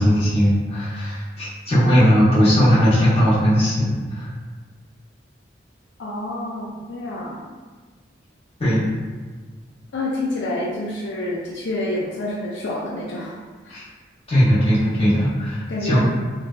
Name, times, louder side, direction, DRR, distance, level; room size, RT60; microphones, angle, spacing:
voice 1, 0.0-4.3 8.6-8.9 13.7-13.8 14.3-16.0, equal, 30° left, -11 dB, 1.0 m, -18 dB
voice 2, 6.0-7.4 9.9-13.3 13.6-13.8 15.7-16.0, left 1 dB, 75° left, -4 dB, 0.4 m, -28 dB
3.2 x 2.2 x 2.4 m, 1.4 s
head